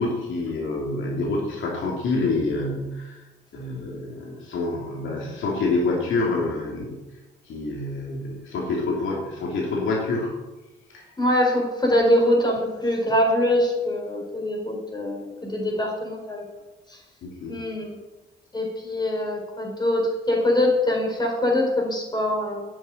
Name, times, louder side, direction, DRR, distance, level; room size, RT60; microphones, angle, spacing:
voice 1, 0.0-3.2 3.5-7.0 7.5-10.3 10.9-11.0 17.2-17.6, left 3 dB, 75° left, -2 dB, 3.0 m, -27 dB
voice 2, 11.2-16.4 17.5-18.0 18.5-22.6, left 1 dB, 20° left, -1 dB, 4.8 m, -23 dB
9.1 x 7.5 x 9.2 m, 1.1 s
cardioid pair, 90°, 20 cm